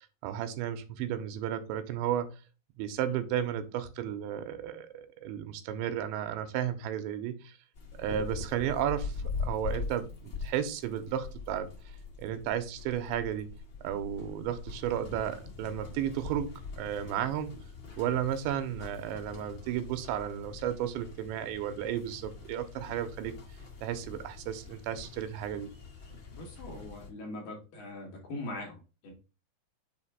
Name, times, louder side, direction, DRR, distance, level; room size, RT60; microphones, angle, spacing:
voice 1, 0.0-2.3 2.8-7.5 8.0-11.7 12.2-13.5 13.8-16.5 16.8-17.5 18.0-23.3 23.8-25.7, right 10 dB, 85° right, 9 dB, 2.9 m, -33 dB
sound 1, 7.7-27.1, left 4 dB, 90° left, 1.0 m, -42 dB
voice 2, 26.3-29.1, left 2 dB, 60° left, 0 dB, 2.7 m, -42 dB
6.8 x 2.9 x 5.4 m, 0.32 s
omnidirectional pair, 5.1 m